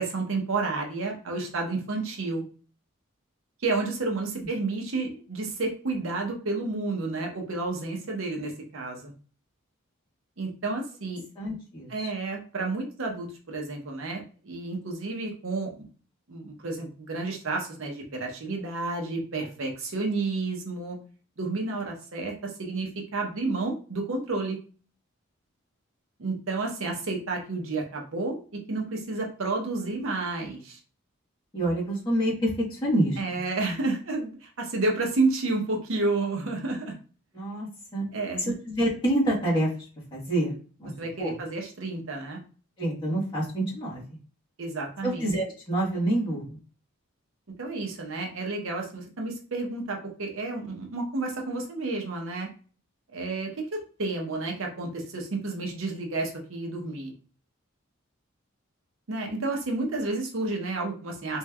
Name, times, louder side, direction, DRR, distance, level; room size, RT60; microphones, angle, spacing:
voice 1, 0.0-2.4 3.6-9.1 10.4-11.2 11.9-15.9 16.3-21.0 21.4-24.6 26.2-28.4 28.7-30.8 33.2-36.9 38.1-38.5 41.0-42.4 44.6-45.3 47.6-52.5 53.1-57.1 59.1-61.4, right 3 dB, 70° right, 1 dB, 0.8 m, -31 dB
voice 2, 11.4-12.1 31.5-33.4 37.3-38.0 38.4-39.7 40.1-40.9 41.2-41.4 42.8-44.2 45.0-46.6, right 1 dB, 20° left, -7 dB, 1.2 m, -27 dB
3.2 x 3.1 x 2.3 m, 0.39 s
head